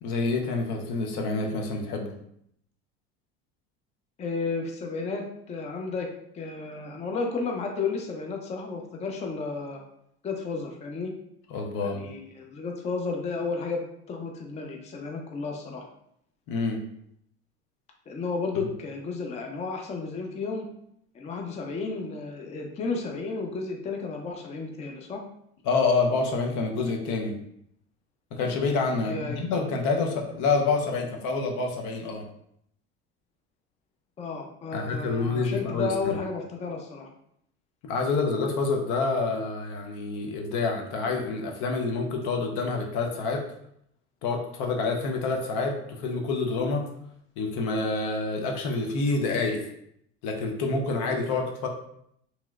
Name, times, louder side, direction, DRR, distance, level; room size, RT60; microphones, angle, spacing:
voice 1, 0.0-2.1 11.5-12.1 16.5-16.8 25.6-27.3 28.3-32.2 34.7-36.2 37.9-43.4 44.2-46.8 47.4-49.6 50.2-51.7, left 3 dB, 70° left, 2 dB, 0.7 m, -27 dB
voice 2, 4.2-9.8 10.2-11.1 11.8-13.8 14.1-15.8 18.1-20.7 21.1-25.2 29.0-29.4 34.2-37.1, left 4 dB, 20° left, 2 dB, 0.4 m, -32 dB
3.0 x 2.9 x 2.3 m, 0.73 s
supercardioid pair, 100°, 31 cm